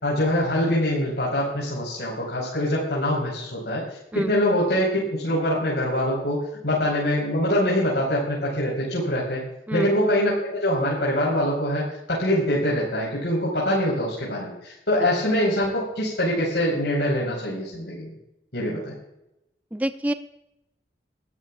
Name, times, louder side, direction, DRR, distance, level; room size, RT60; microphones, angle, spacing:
voice 1, 0.0-3.9 4.1-9.4 9.7-18.1 18.5-18.9, left 1 dB, 80° left, -4 dB, 4.9 m, -24 dB
voice 2, 19.7-20.1, right 1 dB, 10° right, 8 dB, 0.6 m, -26 dB
23.0 x 13.5 x 2.5 m, 0.88 s
head